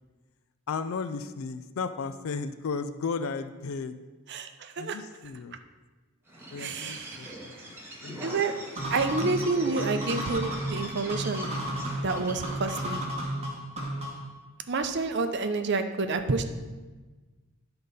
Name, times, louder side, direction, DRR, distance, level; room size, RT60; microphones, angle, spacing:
voice 1, 0.7-4.0 4.8-5.6 6.5-8.6 10.7-10.8, left 5 dB, 70° left, 11 dB, 0.4 m, -35 dB
voice 2, 4.3-5.0 6.6-7.3 8.2-8.5 8.9-11.5 12.0-13.0 14.7-16.5, right 3 dB, 50° right, 8 dB, 0.6 m, -29 dB
Bird, 6.3-12.9, right 1 dB, 10° right, 1.3 m, -42 dB
sound 1, 8.8-14.3, right 1 dB, 30° right, 1.1 m, -33 dB
10.5 x 3.9 x 5.4 m, 1.3 s
head